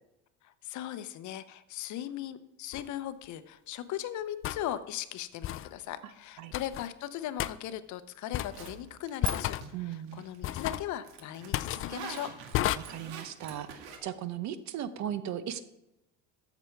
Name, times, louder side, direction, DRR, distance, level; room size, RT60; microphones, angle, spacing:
voice 1, 0.6-9.6 10.1-12.3, left 12 dB, 55° left, 13 dB, 0.8 m, -38 dB
sound 1, 2.7-2.9 4.4-4.6 5.4-5.7 6.5-6.9 7.4-7.5 8.3-8.7 9.2-9.7 10.4-10.9 11.5-11.9 12.5-12.8, left 13 dB, 40° left, 0.4 m, -31 dB
Zipper (clothing), 8.5-9.4 9.6-14.0, right 7 dB, 80° right, 2.0 m, -43 dB
voice 2, 9.7-10.2 12.7-15.6, right 10 dB, 50° right, 13 dB, 0.9 m, -37 dB
13.5 x 7.0 x 4.6 m, 0.92 s
cardioid pair, 125°, 35 cm